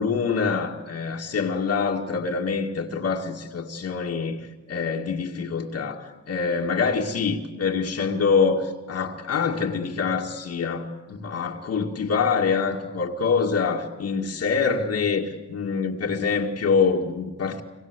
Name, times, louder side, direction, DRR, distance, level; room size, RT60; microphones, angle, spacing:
voice 1, 0.0-17.6, left 5 dB, 55° left, 2.1 m, -25 dB
26.0 x 24.0 x 8.2 m
cardioid pair, 90°, 30 cm